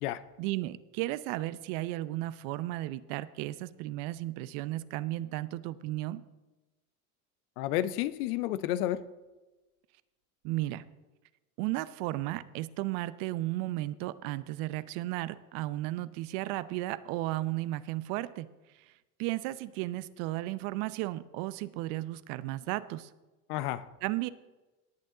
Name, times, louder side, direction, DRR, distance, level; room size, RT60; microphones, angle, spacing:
voice 1, 0.4-6.2 10.4-10.8 11.6-18.5 19.2-23.1 24.0-24.3, right 17 dB, 60° right, 16 dB, 0.8 m, -34 dB
voice 2, 7.6-9.0 23.5-23.8, left 13 dB, 70° left, 14 dB, 0.9 m, -31 dB
18.0 x 8.6 x 3.9 m, 1.1 s
hypercardioid pair, 85°, 47 cm